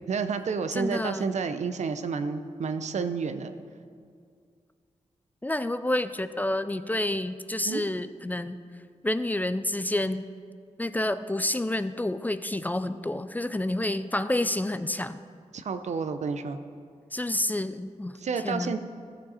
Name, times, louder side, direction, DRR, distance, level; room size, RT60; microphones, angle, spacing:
voice 1, 0.1-3.6 7.6-7.8 15.5-16.6 18.2-18.8, right 5 dB, 70° right, 9 dB, 0.6 m, -30 dB
voice 2, 0.7-1.3 5.4-8.6 9.0-10.3 10.8-15.2 17.1-18.1 18.4-18.7, left 1 dB, 15° left, 12 dB, 0.4 m, -29 dB
14.5 x 7.5 x 4.2 m, 2.2 s
cardioid pair, 70°, 12 cm